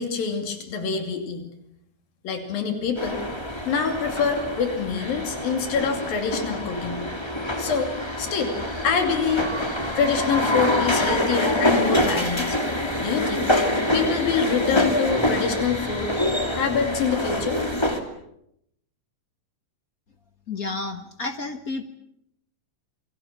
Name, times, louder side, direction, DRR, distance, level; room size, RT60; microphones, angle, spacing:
voice 1, 0.0-1.4 2.2-3.2 3.7-7.1 7.6-9.6 9.9-12.6 13.0-13.5 13.9-16.1 16.5-17.6, left 6 dB, 85° left, 6 dB, 4.5 m, -26 dB
sound 1, 3.0-18.0, left 1 dB, 10° left, 2.2 m, -25 dB
voice 2, 20.5-21.9, left 3 dB, 45° left, 7 dB, 1.1 m, -31 dB
27.0 x 24.0 x 7.4 m, 0.76 s
omnidirectional pair, 4.0 m